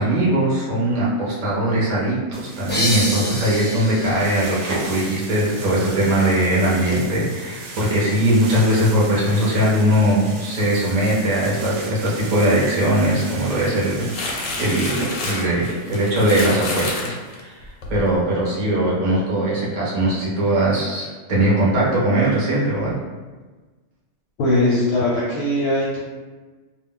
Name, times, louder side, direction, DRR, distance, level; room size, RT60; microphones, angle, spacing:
voice 1, 0.0-17.6 17.9-23.0, right 1 dB, 40° right, -5 dB, 0.7 m, -20 dB
sound 1, 2.3-15.1, right 2 dB, 70° right, 0.9 m, -36 dB
sound 2, 2.7-6.1, left 1 dB, 15° left, 0.3 m, -28 dB
sound 3, 13.0-18.1, left 2 dB, 90° left, 1.0 m, -30 dB
voice 2, 24.4-26.0, left 1 dB, 65° left, -5 dB, 0.7 m, -20 dB
2.3 x 2.0 x 3.7 m, 1.3 s
omnidirectional pair, 1.3 m